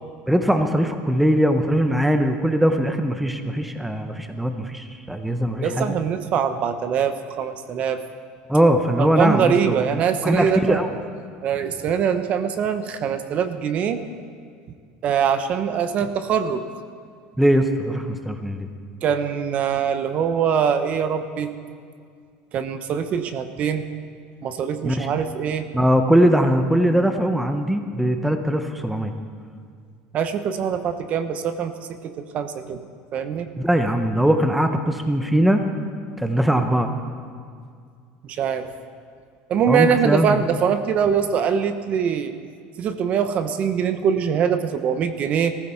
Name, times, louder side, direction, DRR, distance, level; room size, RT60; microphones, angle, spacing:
voice 1, 0.3-6.0 8.5-9.8 10.2-10.9 17.4-18.7 24.8-25.1 25.7-29.1 33.6-35.6 36.2-36.9 39.7-40.4, equal, 5° right, 6 dB, 0.7 m, -20 dB
voice 2, 5.6-8.0 9.0-10.8 11.4-14.0 15.0-16.7 19.0-21.5 22.5-23.9 24.4-25.7 30.1-31.8 32.0-32.8 33.1-33.5 38.2-38.7 39.5-42.3 42.8-45.6, right 7 dB, 40° right, 10 dB, 0.8 m, -23 dB
18.5 x 15.0 x 4.4 m, 2.2 s
cardioid pair, 155°, 4 cm